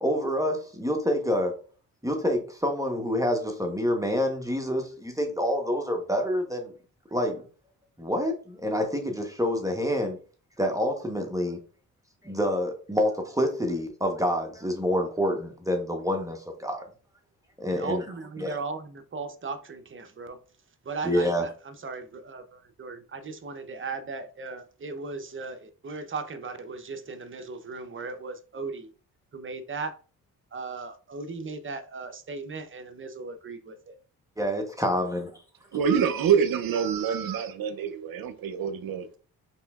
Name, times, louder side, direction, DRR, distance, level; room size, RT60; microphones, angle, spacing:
voice 1, 0.0-1.5 2.0-6.7 7.1-7.4 8.0-10.2 10.6-11.6 12.2-16.8 17.6-18.0 18.4-18.5 21.0-21.4 34.4-35.3, equal, 10° right, 1.0 m, -27 dB
voice 2, 17.7-20.4 20.8-28.9 29.3-30.0 30.5-34.0, right 4 dB, 35° right, 0.7 m, -37 dB
voice 3, 35.7-39.2, right 7 dB, 70° right, 0.7 m, -26 dB
4.1 x 3.4 x 2.4 m
cardioid pair, 60°, 37 cm